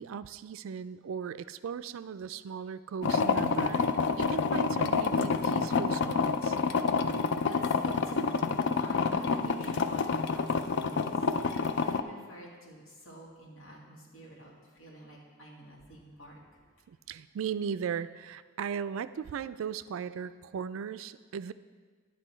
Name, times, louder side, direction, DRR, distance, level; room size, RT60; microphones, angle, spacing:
voice 1, 0.0-6.6 16.9-21.5, right 7 dB, 65° right, 14 dB, 0.3 m, -37 dB
sound 1, 3.0-12.0, left 4 dB, 55° left, 0.4 m, -28 dB
voice 2, 7.4-16.6, left 1 dB, 85° left, -3 dB, 2.2 m, -48 dB
10.0 x 8.2 x 4.4 m, 1.5 s
head